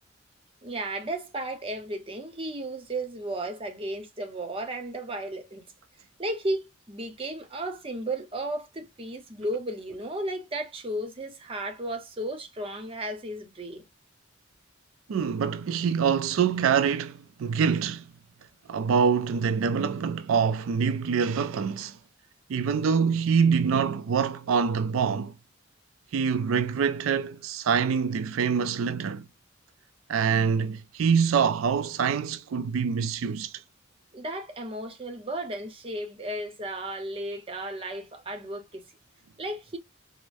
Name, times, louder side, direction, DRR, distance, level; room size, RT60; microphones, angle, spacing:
voice 1, 0.6-5.6 6.2-13.8 34.1-38.8 39.4-39.8, right 1 dB, 30° right, 0.8 m, -34 dB
voice 2, 15.1-18.0 18.7-22.0 22.5-25.3 26.1-29.2 30.1-33.5, right 6 dB, 90° right, 0.4 m, -25 dB
4.7 x 2.0 x 2.5 m
head